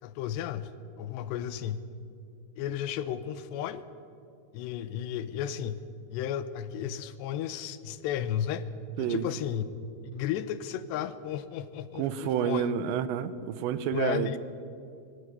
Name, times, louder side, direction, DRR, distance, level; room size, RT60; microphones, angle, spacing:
voice 1, 0.0-0.7 1.0-1.8 2.6-3.8 4.5-5.8 6.1-8.6 9.0-9.7 10.1-12.7 13.9-14.4, left 10 dB, 80° left, 13 dB, 3.0 m, -33 dB
voice 2, 11.9-14.4, right 9 dB, 85° right, 13 dB, 3.1 m, -29 dB
21.5 x 15.5 x 9.6 m, 2.4 s
omnidirectional pair, 5.0 m